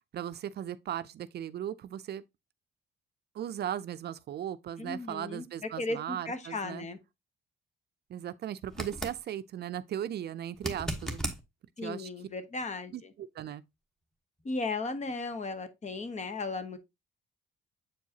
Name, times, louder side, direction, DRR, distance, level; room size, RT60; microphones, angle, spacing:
voice 1, 0.1-2.2 3.3-6.9 8.1-11.3 11.8-12.1 12.9-13.6, right 10 dB, 55° right, 0.4 m, -37 dB
voice 2, 4.8-5.4 5.8-7.0 11.8-13.1 14.4-16.8, left 3 dB, 35° left, 1.0 m, -36 dB
sound 1, 8.7-9.2 10.6-11.4 14.4-14.5, equal, 5° left, 1.2 m, -35 dB
7.6 x 4.6 x 2.8 m
cardioid pair, 90°, 20 cm